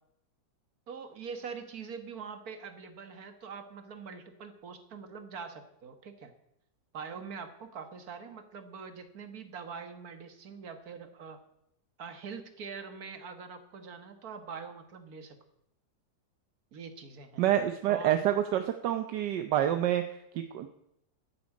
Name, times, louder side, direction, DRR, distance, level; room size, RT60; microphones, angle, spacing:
voice 1, 0.9-6.3 6.9-11.4 12.0-15.4 16.7-17.4 17.9-18.2, right 5 dB, 60° right, 9 dB, 1.8 m, -43 dB
voice 2, 17.4-20.7, right 11 dB, 85° right, 8 dB, 1.4 m, -28 dB
10.5 x 9.6 x 8.5 m, 0.79 s
omnidirectional pair, 1.8 m